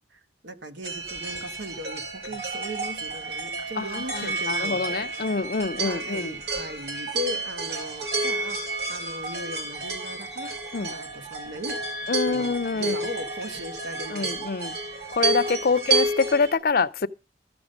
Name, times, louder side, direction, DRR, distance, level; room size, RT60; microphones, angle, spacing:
voice 1, 0.0-5.0 5.8-8.6 8.9-11.8 12.3-14.4, equal, 85° right, 1.3 m, -38 dB
sound 1, 0.8-16.5, right 3 dB, 60° right, 4.4 m, -30 dB
voice 2, 3.8-6.3 10.7-10.9 12.1-13.0 14.1-14.8 15.1-17.1, left 4 dB, 55° left, 0.5 m, -26 dB
13.5 x 6.1 x 6.4 m
head